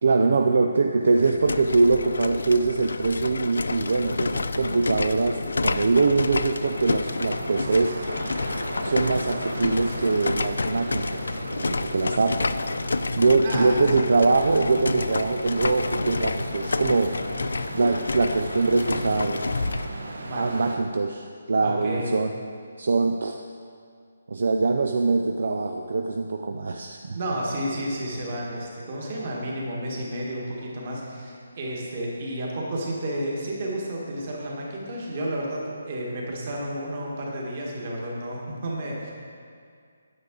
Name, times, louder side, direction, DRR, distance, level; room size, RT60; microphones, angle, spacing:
voice 1, 0.0-7.9 8.8-12.5 13.2-17.1 17.7-19.4 20.3-22.3 22.8-23.4 24.3-27.2, right 3 dB, 55° right, 4 dB, 0.4 m, -23 dB
sound 1, 1.1-19.9, left 3 dB, 85° left, 0.4 m, -29 dB
sound 2, 5.9-20.8, right 2 dB, 90° right, 1.2 m, -37 dB
voice 2, 13.4-14.0 20.2-20.4 21.6-22.1 27.1-39.1, right 1 dB, 30° right, -3 dB, 1.6 m, -31 dB
9.4 x 8.2 x 3.9 m, 2.2 s
hypercardioid pair, 175°, 0 cm